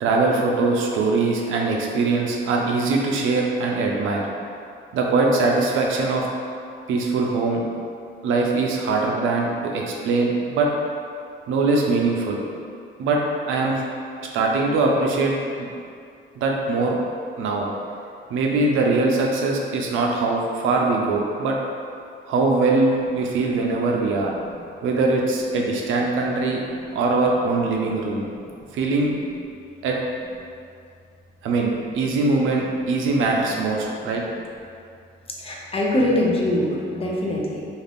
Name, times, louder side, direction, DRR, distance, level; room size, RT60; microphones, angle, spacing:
voice 1, 0.0-4.2 4.9-6.3 6.9-7.6 8.2-10.7 11.5-12.4 13.0-13.2 13.5-13.8 14.3-15.7 16.4-17.0 17.4-17.7 18.3-21.6 22.3-24.3 24.8-26.6 26.9-28.3 28.7-29.1 29.8-30.0 31.4-34.2, right 3 dB, 80° right, -1 dB, 0.5 m, -22 dB
voice 2, 35.4-37.7, left 1 dB, 30° left, -3 dB, 0.5 m, -23 dB
2.5 x 2.4 x 3.3 m, 2.4 s
cardioid pair, 95°, 20 cm